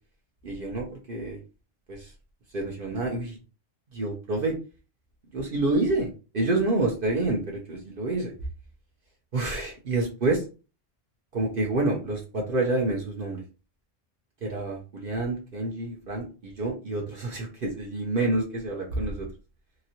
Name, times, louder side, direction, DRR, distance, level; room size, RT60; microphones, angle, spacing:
voice 1, 0.4-1.4 1.9-2.1 2.5-3.4 3.9-4.6 5.3-8.3 9.3-10.4 11.3-13.4 14.4-19.3, right 2 dB, 60° right, -1 dB, 1.0 m, -28 dB
3.0 x 2.6 x 2.8 m, 0.32 s
omnidirectional pair, 1.1 m